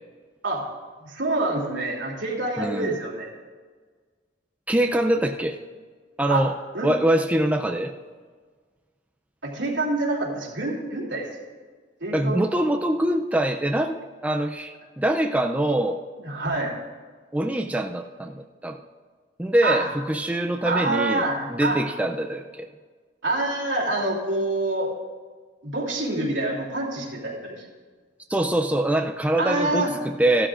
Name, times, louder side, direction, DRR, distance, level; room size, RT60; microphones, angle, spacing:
voice 1, 1.0-3.3 6.3-6.4 6.7-6.9 9.4-11.3 12.0-12.4 16.2-16.7 19.6-19.8 20.6-21.8 23.2-24.9 25.6-27.7 29.4-29.9, right 2 dB, 80° right, -2 dB, 2.9 m, -26 dB
voice 2, 2.6-3.0 4.7-5.6 6.2-6.5 6.8-7.9 12.1-16.0 17.3-18.8 19.4-21.2 21.5-22.7 28.3-30.5, right 1 dB, 10° right, 4 dB, 0.4 m, -24 dB
15.0 x 12.5 x 2.5 m, 1.5 s
head